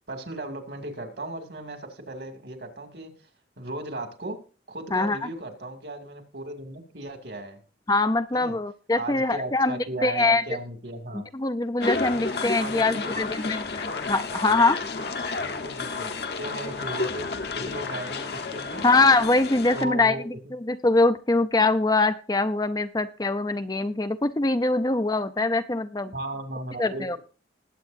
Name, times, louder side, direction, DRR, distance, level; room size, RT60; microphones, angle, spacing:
voice 1, 0.1-3.3 3.6-4.4 4.7-7.6 8.3-8.6 9.0-11.3 12.6-13.2 14.3-14.6 15.4-17.3 17.5-18.8 19.7-20.3 26.1-27.2, right 2 dB, 65° right, 5 dB, 2.4 m, -36 dB
voice 2, 7.9-10.4 11.3-14.8 18.8-26.1 26.8-27.2, left 3 dB, 20° left, 10 dB, 0.5 m, -23 dB
sound 1, 11.8-19.9, left 4 dB, 60° left, 1.1 m, -31 dB
20.0 x 8.3 x 2.6 m, 0.36 s
head